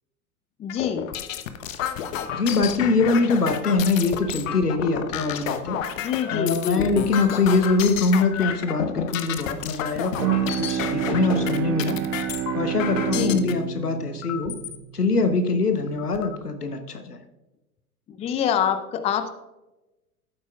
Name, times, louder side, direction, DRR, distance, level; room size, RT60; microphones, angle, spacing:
voice 1, 0.6-1.1 6.0-6.9 13.1-13.4 18.1-19.3, left 8 dB, 15° left, 10 dB, 0.5 m, -26 dB
sound 1, 0.7-13.5 14.2-14.8 15.3-15.4 15.7-16.4, left 9 dB, 60° left, 0.9 m, -31 dB
voice 2, 2.3-5.8 6.3-10.4 10.7-12.0 12.5-14.5 14.9-17.2, left 3 dB, 90° left, 8 dB, 1.0 m, -23 dB
Bowed string instrument, 10.1-15.6, right 10 dB, 30° right, 0.7 m, -28 dB
14.0 x 8.1 x 2.4 m, 1.0 s
figure-of-eight pair, 90°, 45 cm